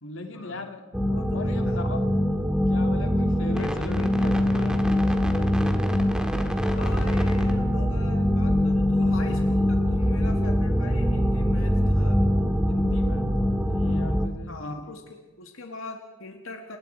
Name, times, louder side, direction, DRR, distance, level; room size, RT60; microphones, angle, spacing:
voice 1, 0.0-0.9 1.3-2.1 2.7-5.8 6.6-7.1 12.7-13.3 13.7-14.9, left 2 dB, 65° left, 5 dB, 2.4 m, -39 dB
sound 1, 0.9-14.3, equal, 5° right, 1.9 m, -23 dB
voice 2, 1.1-1.8 6.7-12.2 14.5-16.8, left 3 dB, 80° left, 3 dB, 1.9 m, -42 dB
29.0 x 20.0 x 4.6 m, 1.2 s
head